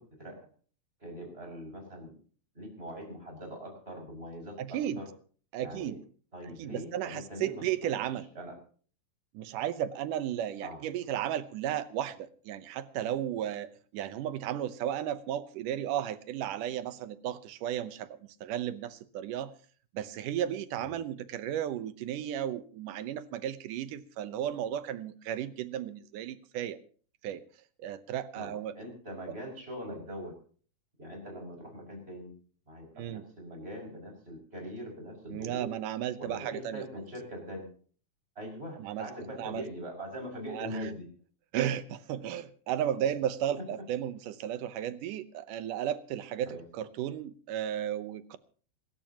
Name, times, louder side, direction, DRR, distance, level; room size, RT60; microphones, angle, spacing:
voice 1, 1.0-2.1 2.5-5.0 5.6-6.0 6.3-7.6 8.3-8.5 10.6-10.8 20.8-20.9 28.3-28.5 28.7-30.3 31.0-32.3 32.7-35.7 36.2-37.7 38.4-41.0 46.5-46.6, equal, 15° right, 1 dB, 6.2 m, -42 dB
voice 2, 4.6-5.0 5.5-6.0 6.5-8.3 9.3-19.5 19.9-26.8 27.2-27.4 27.8-28.8 33.0-33.2 35.3-36.8 38.8-39.1 39.4-39.7 40.5-40.9 41.5-48.4, right 10 dB, 70° right, 13 dB, 2.2 m, -34 dB
26.5 x 14.0 x 2.9 m, 0.43 s
omnidirectional pair, 4.3 m